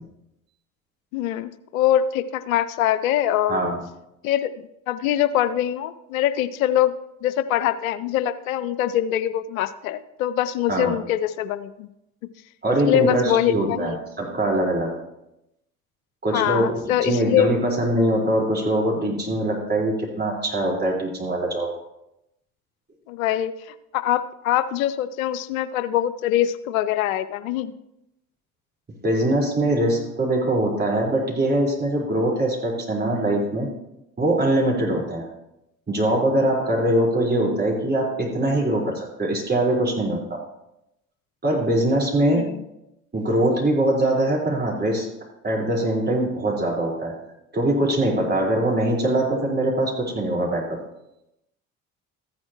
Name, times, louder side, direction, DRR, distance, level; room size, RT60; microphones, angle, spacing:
voice 1, 1.1-3.7 4.2-6.9 7.2-11.9 12.9-14.0 16.3-17.5 23.1-27.7 42.3-42.6, left 11 dB, 75° left, 13 dB, 0.5 m, -23 dB
voice 2, 12.6-14.9 16.2-21.7 29.0-33.7 34.2-35.3 35.9-40.4 41.4-42.5 43.1-45.1 45.4-47.1 47.5-50.8, right 1 dB, 25° right, -2 dB, 4.3 m, -22 dB
14.5 x 9.7 x 3.0 m, 0.86 s
figure-of-eight pair, 55°, 41 cm